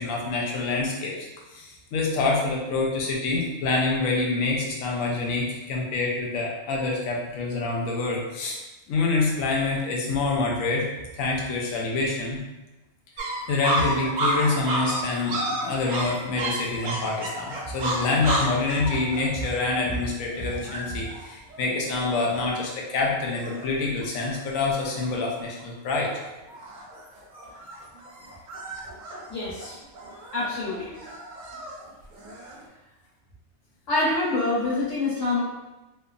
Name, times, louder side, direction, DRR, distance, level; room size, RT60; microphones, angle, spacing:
voice 1, 0.0-8.6 8.9-10.9 11.1-12.4 13.2-26.1, left 3 dB, 90° left, -1 dB, 1.0 m, -26 dB
sound 1, 13.2-22.6 23.1-23.2 23.4-24.0 24.3-25.0 25.4-25.8 26.1-32.6, right 1 dB, 60° right, 0.5 m, -32 dB
voice 2, 29.3-29.7 30.3-30.9 33.9-35.4, left 2 dB, 65° left, -9 dB, 1.5 m, -26 dB
2.9 x 2.1 x 2.4 m, 1.1 s
omnidirectional pair, 1.4 m